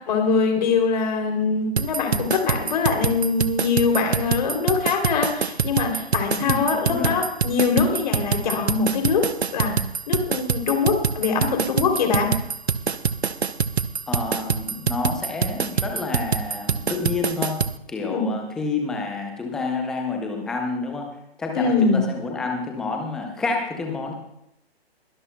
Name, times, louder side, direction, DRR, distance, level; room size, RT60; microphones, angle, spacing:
voice 1, 0.1-9.3 9.5-9.8 10.1-12.4 18.1-18.2 21.5-22.1, left 5 dB, 45° left, 3 dB, 3.0 m, -23 dB
sound 1, 1.8-17.7, right 6 dB, 85° right, 0.7 m, -25 dB
voice 2, 6.4-7.2 14.1-21.1 21.4-24.1, left 3 dB, ahead, 2 dB, 0.4 m, -29 dB
22.0 x 12.0 x 2.2 m, 0.80 s
figure-of-eight pair, 140°, 32 cm